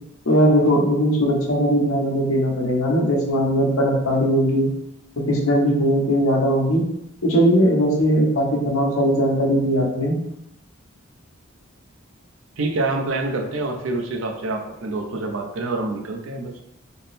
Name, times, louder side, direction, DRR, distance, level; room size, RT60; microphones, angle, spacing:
voice 1, 0.3-4.7 5.3-6.9 7.2-10.2, equal, 85° left, -2 dB, 0.9 m, -19 dB
voice 2, 12.6-16.6, right 2 dB, 70° right, 3 dB, 0.5 m, -26 dB
3.5 x 2.0 x 4.1 m, 0.81 s
head